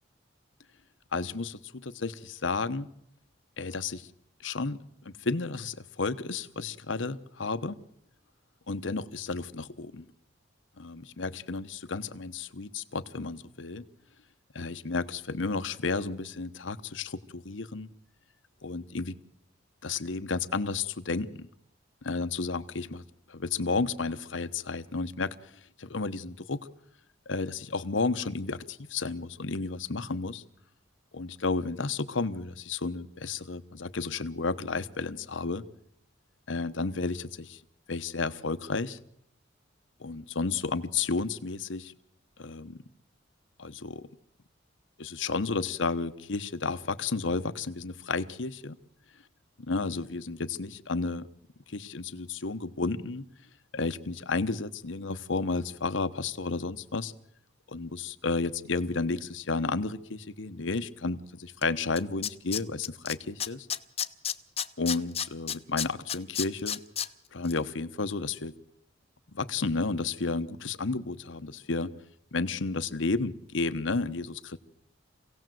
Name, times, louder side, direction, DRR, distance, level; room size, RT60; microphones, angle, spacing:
voice 1, 1.1-2.9 3.6-4.1 4.4-4.8 5.0-7.8 8.7-10.0 10.8-13.8 14.5-17.9 18.6-19.2 19.8-21.5 22.0-23.0 23.3-25.3 25.8-26.7 27.3-30.4 31.1-35.6 36.5-37.6 37.9-39.0 40.0-41.9 42.4-42.8 43.6-44.0 45.0-48.8 49.7-51.3 51.7-53.3 53.7-57.1 57.7-63.7 64.8-66.8 67.3-68.5 69.3-71.9 72.3-74.6, left 3 dB, 75° left, 12 dB, 1.0 m, -32 dB
Tools, 61.6-61.7 62.0-63.1 63.4-67.1 67.4-67.5, left 9 dB, 30° left, 0.8 m, -31 dB
26.0 x 17.0 x 7.8 m, 0.75 s
head